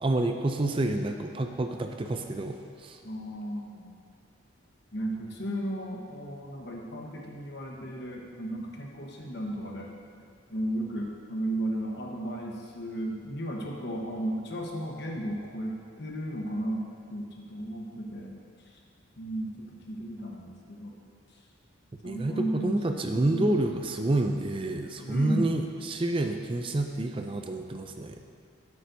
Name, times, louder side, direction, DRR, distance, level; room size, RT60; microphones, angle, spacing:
voice 1, 0.0-3.0 22.0-28.2, right 2 dB, 25° right, 5 dB, 0.4 m, -29 dB
voice 2, 3.0-3.9 4.9-9.9 10.1-10.2 10.5-18.7 19.2-20.9 21.3-21.4 22.0-23.5 25.0-25.5, right 1 dB, 55° left, -1 dB, 1.2 m, -34 dB
13.5 x 8.4 x 2.7 m, 2.2 s
head